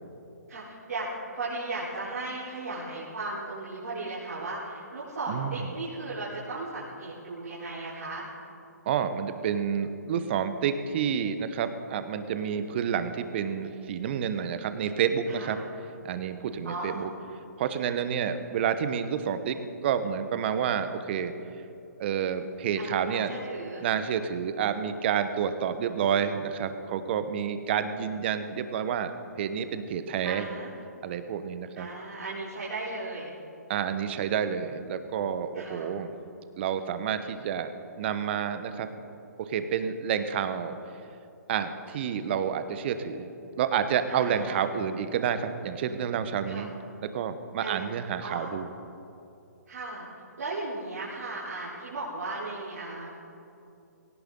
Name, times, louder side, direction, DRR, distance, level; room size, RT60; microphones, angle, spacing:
voice 1, 0.5-1.1 1.4-8.3 15.3-15.6 16.6-17.1 22.8-23.9 30.2-30.7 31.8-33.3 35.5-35.9 44.1-44.8 46.5-46.6 47.6-47.9 48.2-48.5 49.7-50.1 50.4-53.2, right 2 dB, 65° right, -9 dB, 4.1 m, -36 dB
voice 2, 5.3-5.6 8.9-15.6 16.0-17.1 17.6-19.6 19.8-21.3 22.0-23.3 23.8-29.1 29.4-30.5 31.0-31.9 33.7-36.1 36.6-37.7 38.0-38.9 39.4-40.7 41.5-43.3 43.6-46.7 47.1-48.7, right 8 dB, 40° right, 10 dB, 1.2 m, -29 dB
20.0 x 17.5 x 3.9 m, 2.7 s
figure-of-eight pair, 130°, 9 cm